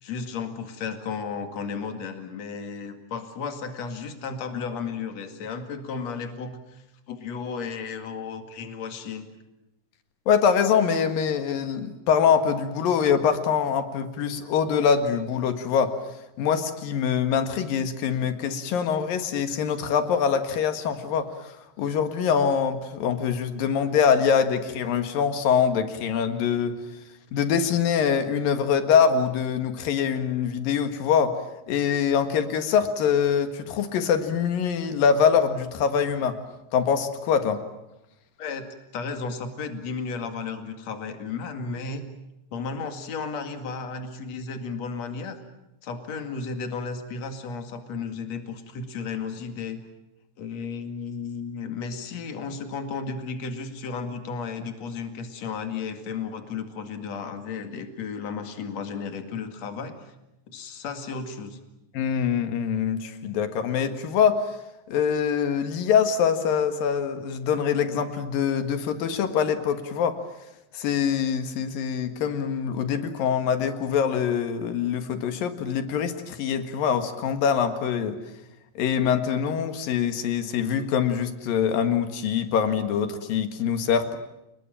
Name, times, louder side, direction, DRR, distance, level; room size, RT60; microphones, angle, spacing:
voice 1, 0.0-9.3 38.4-38.7 38.9-42.0 42.5-45.4 45.8-49.8 50.4-59.9 60.5-61.6, left 5 dB, 55° left, 7 dB, 3.2 m, -34 dB
voice 2, 10.3-16.0 16.4-21.5 21.8-26.8 27.3-31.4 31.7-36.4 36.7-37.6 61.9-64.4 64.9-70.2 70.7-78.2 78.8-84.2, left 7 dB, 90° left, 9 dB, 3.5 m, -24 dB
29.0 x 20.5 x 8.9 m, 0.89 s
omnidirectional pair, 3.9 m